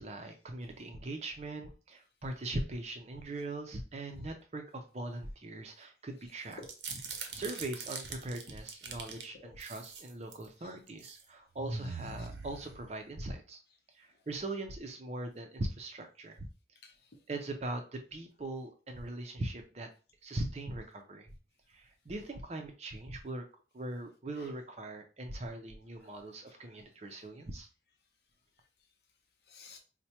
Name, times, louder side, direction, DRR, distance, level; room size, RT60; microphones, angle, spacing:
voice 1, 0.0-6.6 7.3-13.6 13.9-16.5 17.3-19.9 20.2-21.3 21.7-23.4 23.7-27.7, right 2 dB, 35° right, 5 dB, 0.5 m, -40 dB
sound 1, 6.5-9.2 9.6-10.5 10.9-11.2 11.6-13.2, right 4 dB, 75° right, 0.6 m, -42 dB
voice 2, 6.6-7.4 8.9-9.0 9.3-9.5 10.6-10.8 12.2-12.3 16.8-17.1 24.4-24.5 26.0-26.8 29.5-29.8, left 2 dB, 60° left, 2 dB, 0.7 m, -54 dB
4.4 x 2.1 x 2.8 m, 0.35 s
head